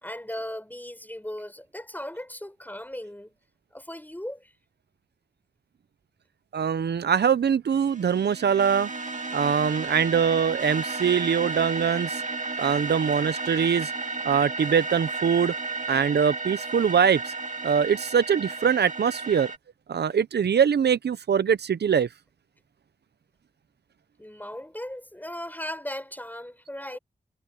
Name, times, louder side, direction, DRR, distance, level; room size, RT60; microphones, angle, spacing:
voice 1, 0.0-3.3 3.7-4.5 24.2-27.0, left 1 dB, 10° left, 4.7 m, -37 dB
voice 2, 6.5-8.9 9.3-12.2 12.6-13.9 14.2-15.5 15.9-17.3 17.6-19.5 19.9-22.1, right 7 dB, 80° right, 0.7 m, -23 dB
sound 1, 7.7-19.6, right 3 dB, 50° right, 2.7 m, -33 dB
cardioid pair, 45°, 17 cm